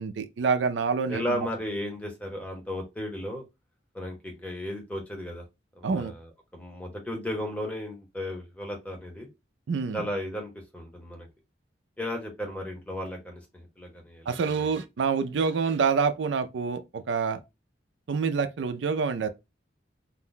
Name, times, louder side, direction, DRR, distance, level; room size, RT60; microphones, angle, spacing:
voice 1, 0.0-1.5 5.8-6.1 9.7-10.1 14.3-17.4 18.1-19.3, right 5 dB, 80° right, 0.4 m, -27 dB
voice 2, 1.1-3.4 3.9-5.4 5.8-9.3 9.9-11.3 12.0-14.7, equal, 10° left, 0.7 m, -35 dB
2.5 x 2.1 x 3.7 m
head